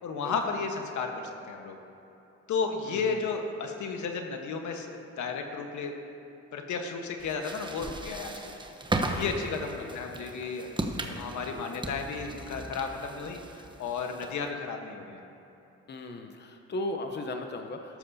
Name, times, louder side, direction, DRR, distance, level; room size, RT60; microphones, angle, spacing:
voice 1, 0.0-1.8 2.5-5.9 6.5-8.5 9.1-15.2, left 5 dB, 70° left, 4 dB, 1.3 m, -33 dB
voice 2, 2.9-3.3 9.1-10.0 11.5-11.7 15.9-18.0, left 2 dB, 35° left, 5 dB, 0.8 m, -38 dB
sound 1, 7.2-14.5, right 2 dB, 15° right, 1.0 m, -36 dB
13.5 x 12.5 x 2.8 m, 3.0 s
cardioid pair, 90°, 30 cm